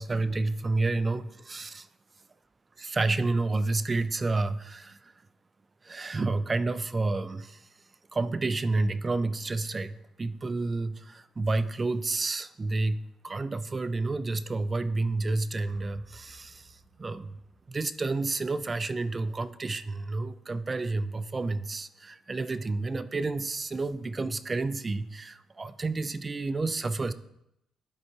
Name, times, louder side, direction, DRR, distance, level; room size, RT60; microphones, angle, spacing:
voice 1, 0.0-1.9 2.8-5.1 5.8-7.7 8.1-17.4 17.7-27.1, right 3 dB, 30° right, 13 dB, 0.4 m, -30 dB
sound 1, 15.7-19.9, right 3 dB, 75° right, 1.4 m, -59 dB
13.5 x 4.5 x 2.8 m, 0.82 s
cardioid pair, 90°, 0 cm